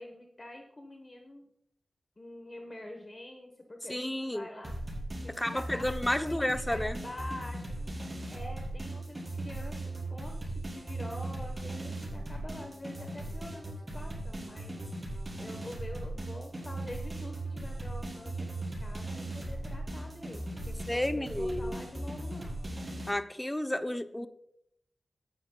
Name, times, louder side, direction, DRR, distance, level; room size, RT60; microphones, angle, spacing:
voice 1, 0.0-1.5 2.2-4.7 5.2-5.9 6.2-7.8 8.3-14.8 15.4-22.8 24.1-24.3, left 1 dB, 25° left, 3 dB, 1.0 m, -46 dB
voice 2, 3.9-4.5 5.4-7.0 20.9-21.8 23.1-24.3, left 1 dB, 10° left, 9 dB, 0.6 m, -31 dB
sound 1, 4.6-23.1, right 1 dB, 20° right, 4.6 m, -38 dB
18.0 x 10.0 x 2.2 m, 0.75 s
wide cardioid pair, 145°, 0 cm